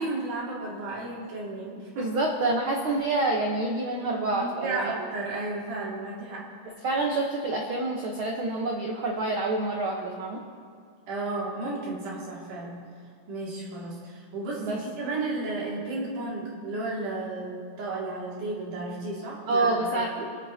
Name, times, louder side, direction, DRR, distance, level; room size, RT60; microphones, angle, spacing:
voice 1, 0.0-2.1 3.9-4.1 4.3-6.6 11.1-12.8 13.3-20.3, right 2 dB, 85° right, -5 dB, 3.9 m, -33 dB
voice 2, 2.0-4.9 6.8-10.4 14.6-14.8 19.5-20.1, right 2 dB, 65° right, 0 dB, 1.3 m, -27 dB
25.5 x 9.0 x 2.8 m, 2.1 s
omnidirectional pair, 3.6 m